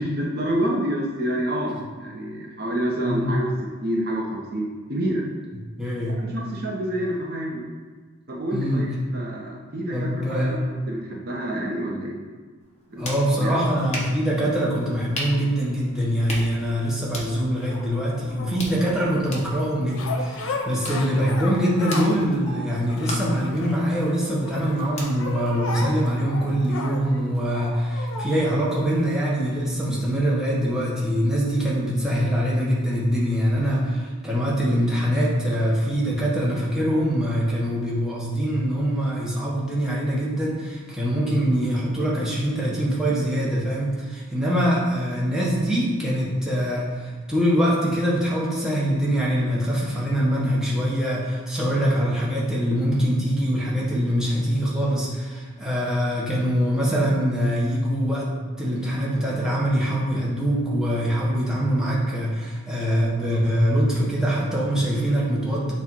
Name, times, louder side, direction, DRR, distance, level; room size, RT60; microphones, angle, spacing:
voice 1, 0.0-3.5 3.8-5.2 6.0-7.6 8.3-12.1 12.9-13.6, right 1 dB, 45° right, -2 dB, 0.8 m, -28 dB
voice 2, 3.0-3.3 5.8-6.2 8.5-8.9 9.9-10.6 13.0-58.3 58.6-65.7, equal, 5° right, -6 dB, 0.9 m, -23 dB
sound 1, 12.6-26.3, left 1 dB, 30° left, 1.0 m, -39 dB
sound 2, 17.6-19.0 19.9-22.3 22.6-24.0 24.4-28.3 29.0-29.1, left 3 dB, 80° left, 0.7 m, -34 dB
7.2 x 2.4 x 5.4 m, 1.5 s
head